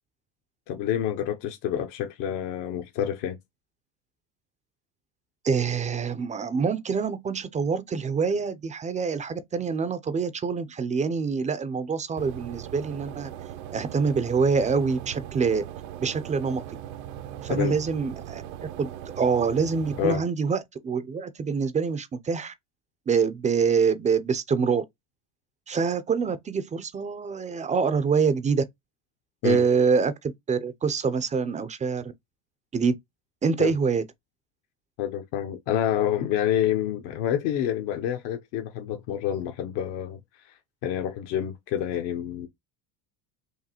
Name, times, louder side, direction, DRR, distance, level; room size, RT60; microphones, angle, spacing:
voice 1, 0.7-3.4 17.5-17.8 20.0-20.2 29.4-29.6 33.6-33.7 35.0-40.5 40.8-42.5, left 10 dB, 65° left, 0.8 m, -28 dB
voice 2, 5.4-13.3 13.7-15.7 16.0-16.6 17.4-18.4 18.8-18.9 19.2-22.5 23.1-24.8 25.7-28.6 29.4-32.1 32.7-32.9 33.4-34.0, right 5 dB, 15° right, 0.4 m, -25 dB
sound 1, 12.2-20.2, right 11 dB, 70° right, 0.6 m, -39 dB
4.7 x 2.7 x 2.9 m
supercardioid pair, 100°, 46 cm